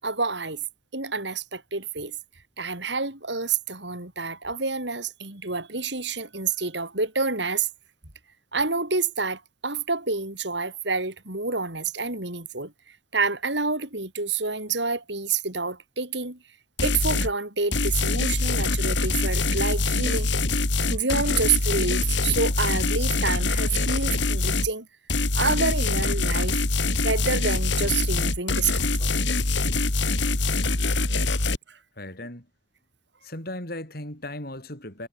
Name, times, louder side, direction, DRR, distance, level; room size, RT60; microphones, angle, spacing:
voice 1, 0.0-0.6 0.9-2.1 2.6-7.7 8.5-12.7 13.1-16.4 16.8-20.3 20.9-24.9 25.3-26.6 27.0-29.1 31.7-31.8, right 4 dB, 65° right, 6.6 m, -28 dB
sound 1, 16.8-17.3 17.7-24.7 25.1-31.6, left 3 dB, 70° left, 3.5 m, -24 dB
voice 2, 32.0-32.5 33.2-35.1, left 1 dB, 50° left, 6.0 m, -36 dB
head